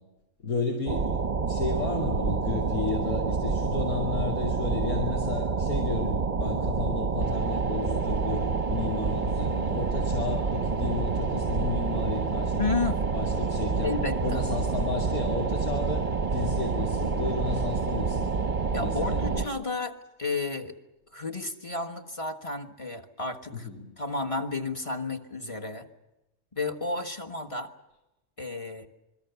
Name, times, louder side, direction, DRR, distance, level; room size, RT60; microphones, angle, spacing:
voice 1, 0.4-1.1 1.5-12.6 13.1-13.9 14.2-16.0 16.3-18.5 18.8-19.4 23.5-23.9, left 4 dB, 80° left, -1 dB, 3.2 m, -33 dB
sound 1, 0.9-19.5, right 4 dB, 35° right, 0.9 m, -28 dB
sound 2, 7.2-19.5, left 1 dB, 45° left, 3.7 m, -51 dB
voice 2, 12.6-13.0 13.8-14.4 18.7-20.7 21.1-23.7 24.0-25.9 26.5-27.7 28.4-28.9, left 3 dB, 25° left, 5 dB, 1.3 m, -32 dB
27.0 x 22.0 x 7.0 m, 1.0 s
omnidirectional pair, 1.6 m